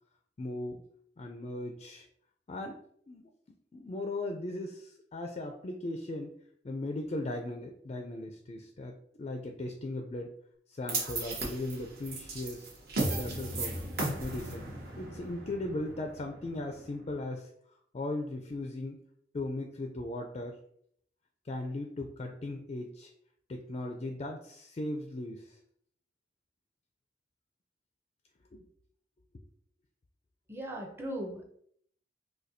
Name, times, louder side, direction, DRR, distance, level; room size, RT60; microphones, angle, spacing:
voice 1, 0.4-0.8 1.2-2.1 2.5-2.8 3.1-3.3 3.7-6.3 6.6-10.3 10.7-12.7 13.1-13.9 14.2-17.5 17.9-19.0 19.3-20.6 21.4-23.1 23.5-25.6 28.5-28.6, left 2 dB, 35° left, 4 dB, 0.3 m, -38 dB
sound 1, 10.9-17.2, right 2 dB, 60° right, 0.9 m, -36 dB
voice 2, 30.5-31.4, right 1 dB, 15° right, 2 dB, 0.5 m, -38 dB
4.1 x 2.6 x 2.6 m, 0.66 s
head